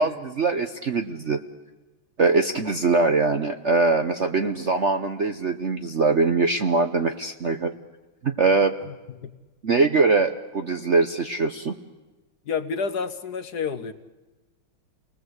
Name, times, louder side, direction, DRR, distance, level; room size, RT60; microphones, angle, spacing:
voice 1, 0.0-1.4 2.2-7.7 8.2-8.7 9.6-11.8, right 3 dB, 50° right, 6 dB, 0.9 m, -22 dB
voice 2, 12.5-13.9, left 5 dB, 55° left, 10 dB, 1.4 m, -29 dB
30.0 x 20.0 x 8.1 m, 1.1 s
omnidirectional pair, 2.3 m